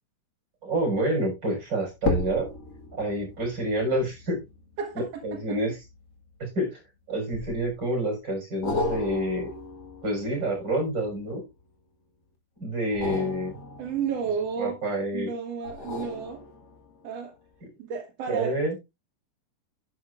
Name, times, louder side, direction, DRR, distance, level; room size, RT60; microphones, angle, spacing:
voice 1, 0.6-2.5 3.0-4.4 4.9-5.8 6.4-6.8 7.1-9.5 10.0-11.4 12.6-13.6 14.6-15.3 17.6-17.7 18.3-18.7, right 1 dB, 25° right, 6.3 m, -28 dB
sound 1, 0.7-1.1 1.9-6.6 7.3-7.9 8.6-11.6 12.8-14.9 15.6-17.0 17.5-17.6, left 2 dB, 65° left, 0.9 m, -35 dB
voice 2, 13.8-14.8 15.1-16.4 17.0-17.3 17.8-18.7, right 6 dB, 60° right, 1.8 m, -32 dB
11.5 x 9.6 x 2.5 m
omnidirectional pair, 4.7 m